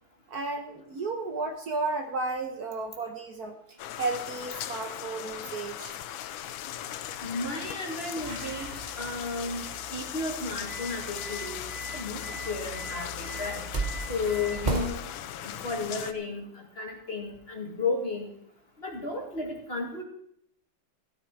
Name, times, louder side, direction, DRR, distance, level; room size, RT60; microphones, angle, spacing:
voice 1, 0.3-3.5 3.9-6.0, right 3 dB, 55° right, 5 dB, 1.4 m, -33 dB
sound 1, 3.8-16.1, left 11 dB, 85° left, 1.5 m, -39 dB
voice 2, 7.2-8.7 9.0-9.7 9.9-11.6 11.9-13.6 14.1-15.0 15.4-18.3 18.8-20.0, left 3 dB, 30° left, 1 dB, 2.4 m, -33 dB
sound 2, 8.2-14.9, right 2 dB, 25° right, 1.1 m, -37 dB
15.5 x 10.5 x 4.6 m, 0.70 s
omnidirectional pair, 2.1 m